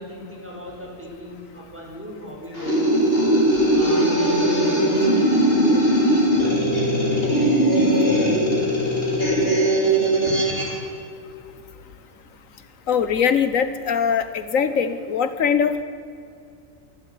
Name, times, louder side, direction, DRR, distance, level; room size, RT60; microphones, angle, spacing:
voice 1, 0.0-3.1 3.7-7.3, left 1 dB, 10° right, -2 dB, 6.4 m, -37 dB
sound 1, 2.5-10.7, right 1 dB, 45° left, 5.8 m, -19 dB
voice 2, 12.9-15.8, left 7 dB, 80° left, 11 dB, 1.4 m, -21 dB
26.5 x 12.5 x 9.9 m, 2.4 s
omnidirectional pair, 1.4 m